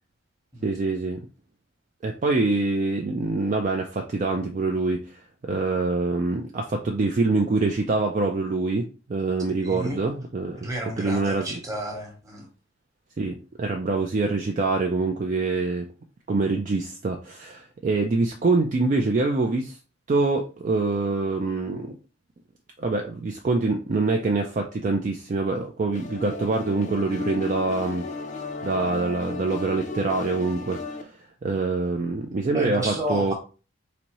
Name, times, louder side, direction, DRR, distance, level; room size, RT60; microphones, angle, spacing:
voice 1, 0.6-1.2 2.0-10.7 11.0-11.6 13.2-15.8 16.3-19.8 20.1-22.0 22.8-28.0 28.6-31.1 31.4-33.3, right 3 dB, 40° right, 2 dB, 0.4 m, -25 dB
voice 2, 9.5-10.0 10.6-12.5 32.5-33.3, equal, 15° right, 0 dB, 1.0 m, -32 dB
sound 1, 25.9-31.0, left 3 dB, 40° left, 0.4 m, -34 dB
4.1 x 2.6 x 2.9 m, 0.35 s
head